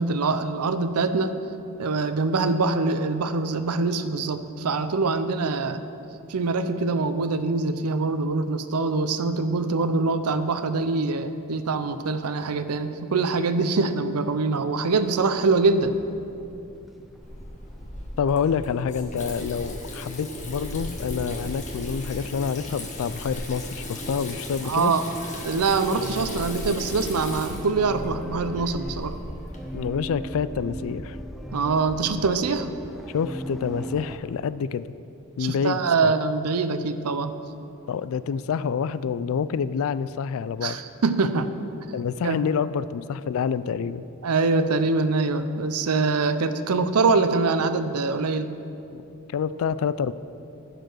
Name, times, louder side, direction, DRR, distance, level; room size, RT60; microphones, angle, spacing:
voice 1, 0.0-1.3 1.8-5.8 6.3-15.9 24.6-25.0 25.4-29.2 31.5-32.7 35.4-37.3 40.6-41.5 42.2-42.4 44.2-48.5, right 3 dB, 85° right, 10 dB, 0.6 m, -24 dB
sound 1, 14.9-34.2, equal, ahead, 0.5 m, -40 dB
Water tap faucet / Sink (filling or washing), 17.2-29.9, left 1 dB, 35° left, 1.4 m, -37 dB
voice 2, 18.2-24.9 29.7-31.2 33.1-34.9 35.4-36.1 37.9-40.8 41.9-44.1 48.9-49.0 49.3-50.1, left 6 dB, 65° left, 16 dB, 0.3 m, -27 dB
15.0 x 5.0 x 6.1 m, 2.8 s
head